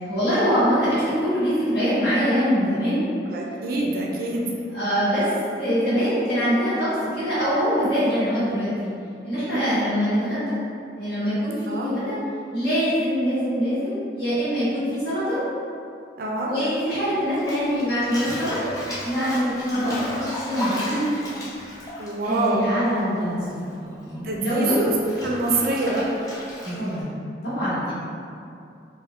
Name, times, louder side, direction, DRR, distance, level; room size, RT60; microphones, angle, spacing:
voice 1, 0.1-3.0 4.7-5.3 5.6-8.9 9.2-10.6 11.0-12.2 12.5-15.4 16.4-18.7 19.0-21.1 22.2-24.9 26.6-27.1 27.4-27.9, equal, 60° left, -12 dB, 1.2 m, -24 dB
voice 2, 3.3-4.6 9.5-9.9 11.7-11.9 16.2-16.6 19.7-19.9 22.0-22.7 24.2-24.9 25.2-26.0, right 2 dB, 55° right, -2 dB, 0.4 m, -25 dB
Bathtub (filling or washing), 17.3-23.2 23.5-27.0, left 1 dB, 20° left, 0.5 m, -34 dB
3.4 x 2.1 x 2.4 m, 2.5 s
head